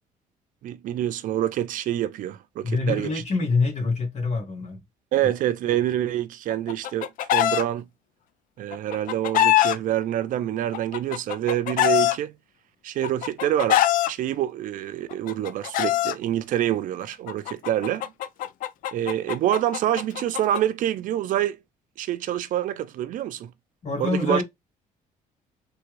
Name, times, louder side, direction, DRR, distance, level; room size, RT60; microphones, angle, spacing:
voice 1, 0.6-3.2 5.1-7.9 8.6-12.3 12.8-18.1 18.9-21.6 22.0-23.5 24.0-24.4, right 12 dB, 65° right, 0.4 m, -26 dB
voice 2, 2.6-4.8 23.8-24.4, left 3 dB, 50° left, 1.6 m, -25 dB
Chicken rooster, 6.5-7.6 8.7-9.8 10.7-12.1 13.0-14.1 15.1-16.1 17.3-20.6, left 13 dB, 70° left, 0.4 m, -23 dB
3.4 x 2.2 x 3.1 m
cardioid pair, 105°, 15 cm